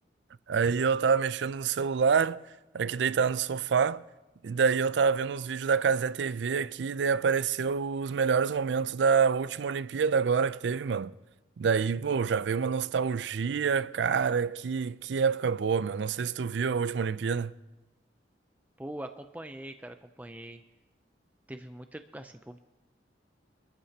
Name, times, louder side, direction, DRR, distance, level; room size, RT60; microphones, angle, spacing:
voice 1, 0.5-2.4 2.7-4.0 4.4-11.1 11.6-17.5, right 6 dB, 70° right, 0.4 m, -27 dB
voice 2, 18.8-20.6 21.5-22.6, right 1 dB, 10° right, 0.4 m, -42 dB
25.5 x 14.0 x 2.8 m
head